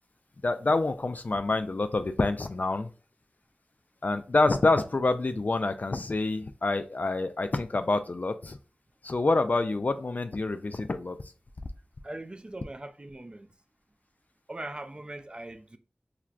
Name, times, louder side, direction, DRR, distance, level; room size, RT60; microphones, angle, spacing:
voice 1, 0.4-2.9 4.0-8.6 9.0-11.2, left 2 dB, 45° left, 0.3 m, -27 dB
voice 2, 12.0-13.5 14.5-15.8, right 2 dB, 25° right, 0.4 m, -40 dB
5.7 x 2.1 x 2.4 m
wide cardioid pair, 65°, 4 cm